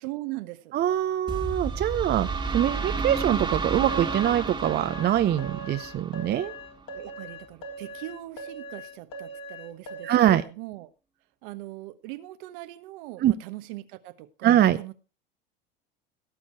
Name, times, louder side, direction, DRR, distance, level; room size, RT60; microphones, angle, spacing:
voice 1, 0.0-0.7 6.9-10.1 10.4-10.9 11.4-14.9, right 17 dB, 60° right, 1.1 m, -40 dB
voice 2, 0.7-2.3 2.5-6.5 10.0-10.4 13.2-13.3 14.4-14.8, right 12 dB, 35° right, 0.8 m, -23 dB
sound 1, 1.3-6.9, right 4 dB, 15° right, 1.8 m, -31 dB
sound 2, 3.9-10.4, right 1 dB, 50° left, 3.5 m, -41 dB
17.0 x 7.1 x 4.5 m
hypercardioid pair, 80°, 29 cm